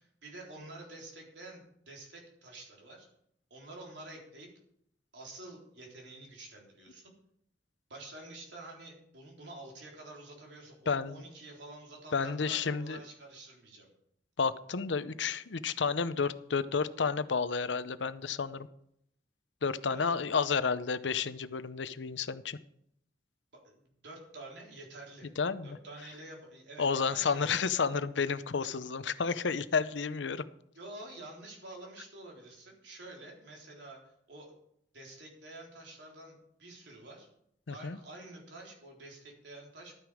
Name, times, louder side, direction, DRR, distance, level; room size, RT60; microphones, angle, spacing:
voice 1, 0.0-3.1 3.5-4.5 5.1-7.1 7.9-13.9 19.8-20.1 23.5-25.3 25.6-27.6 30.7-34.0 34.3-34.5 34.9-37.3 37.7-40.0, right 2 dB, 75° right, -1 dB, 3.7 m, -49 dB
voice 2, 10.9-11.2 12.1-13.0 14.4-18.7 19.6-22.6 25.4-25.8 26.8-30.4 37.7-38.0, left 5 dB, 80° left, 14 dB, 0.7 m, -31 dB
12.5 x 9.4 x 4.9 m, 0.72 s
head